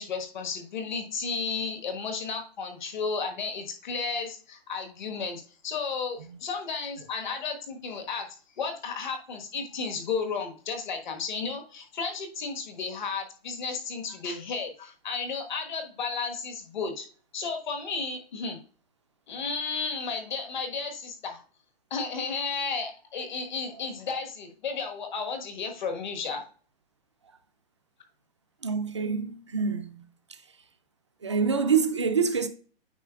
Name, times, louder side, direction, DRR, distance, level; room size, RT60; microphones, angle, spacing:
voice 1, 0.0-8.3 8.6-17.1 17.3-18.6 19.3-21.4 21.9-26.4, left 5 dB, 50° left, 1.4 m, -33 dB
voice 2, 28.6-30.0 30.3-30.4 31.2-32.5, right 5 dB, 30° right, 0.4 m, -26 dB
8.9 x 5.3 x 2.4 m
hypercardioid pair, 175°, 31 cm